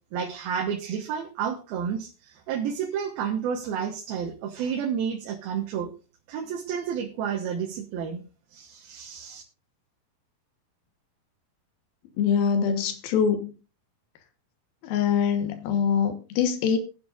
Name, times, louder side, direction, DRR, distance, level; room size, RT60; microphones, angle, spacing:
voice 1, 0.1-5.9 6.3-8.2 8.5-9.4, right 7 dB, 80° right, 1 dB, 3.1 m, -30 dB
voice 2, 12.2-13.5 14.8-16.8, left 7 dB, 75° left, 6 dB, 3.1 m, -24 dB
22.5 x 7.8 x 2.5 m, 0.33 s
omnidirectional pair, 4.3 m